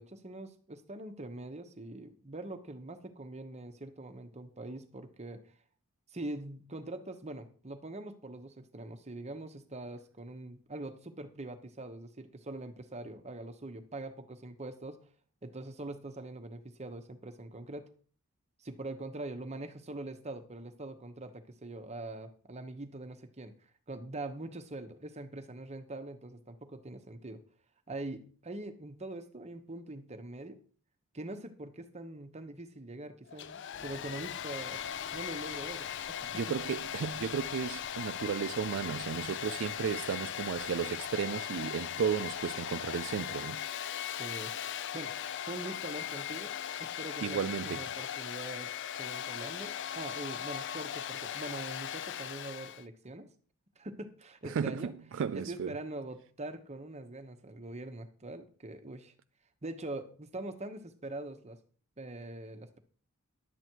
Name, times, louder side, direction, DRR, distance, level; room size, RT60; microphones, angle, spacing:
voice 1, 0.0-5.5 6.1-15.0 15.4-17.9 18.6-23.5 23.9-27.4 27.9-30.6 31.1-34.8 35.1-36.3 44.2-44.5 44.9-46.5 46.8-48.7 49.0-53.3 53.8-54.9 55.3-59.1 59.6-61.6 62.0-62.8, right 2 dB, 30° right, 1.1 m, -43 dB
Domestic sounds home sounds, 33.3-52.8, left 9 dB, 55° left, 0.5 m, -39 dB
sound 1, 33.7-43.6, left 1 dB, 25° left, 1.3 m, -59 dB
voice 2, 36.3-43.6 47.2-47.8 54.4-55.7, right 7 dB, 60° right, 0.3 m, -34 dB
11.0 x 8.1 x 4.6 m
head